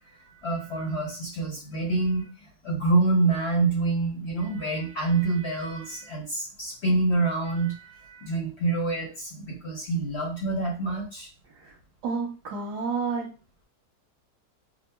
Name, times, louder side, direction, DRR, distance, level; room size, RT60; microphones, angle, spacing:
voice 1, 0.1-2.3 2.6-11.3, right 3 dB, 50° left, -2 dB, 1.0 m, -27 dB
voice 2, 12.0-13.3, right 4 dB, 90° right, -3 dB, 1.4 m, -30 dB
6.0 x 2.2 x 2.2 m, 0.34 s
omnidirectional pair, 1.7 m